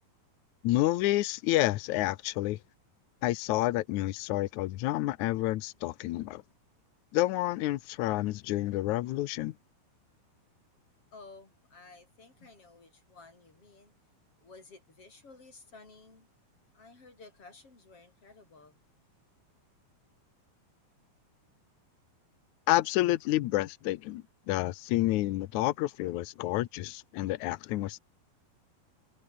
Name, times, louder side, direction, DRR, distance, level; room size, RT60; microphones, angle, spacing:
voice 1, 0.6-2.6 3.2-6.4 7.1-9.5 22.7-28.0, left 17 dB, 80° left, 1.7 m, -29 dB
voice 2, 11.1-13.9 14.4-16.3 16.7-18.8, left 3 dB, 35° left, 6.9 m, -54 dB
omnidirectional pair, 4.4 m